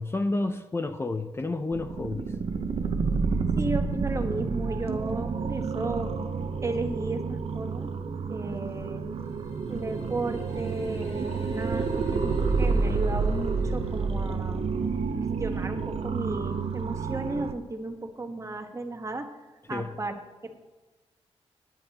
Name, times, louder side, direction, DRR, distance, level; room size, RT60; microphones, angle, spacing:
voice 1, 0.0-2.3 19.7-19.9, left 2 dB, 25° left, 0.6 m, -30 dB
sound 1, 1.7-17.5, right 4 dB, 65° right, 0.9 m, -29 dB
voice 2, 3.5-6.2 6.6-7.9 8.3-9.0 9.7-14.7 15.4-19.3 19.7-20.6, right 2 dB, 30° right, 1.3 m, -34 dB
sound 2, 9.1-15.0, left 3 dB, 70° left, 4.2 m, -54 dB
18.5 x 9.6 x 3.0 m
wide cardioid pair, 110°, 11 cm